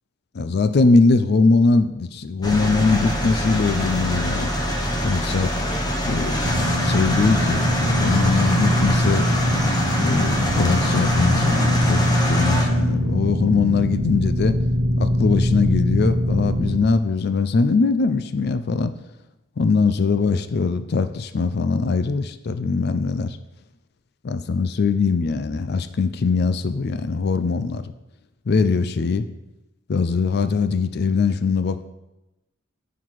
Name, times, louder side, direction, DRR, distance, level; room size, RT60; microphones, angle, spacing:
voice 1, 0.3-4.5 5.0-5.5 6.1-6.4 6.8-7.7 8.0-9.3 10.0-14.6 15.0-18.9 19.6-23.4 24.2-27.9 28.5-29.3 29.9-31.9, left 4 dB, 50° left, 11 dB, 0.4 m, -21 dB
sound 1, 2.4-12.7, equal, 20° left, 1.0 m, -24 dB
sound 2, 6.4-16.8, equal, 70° right, 0.9 m, -22 dB
9.2 x 5.8 x 4.6 m, 0.97 s
head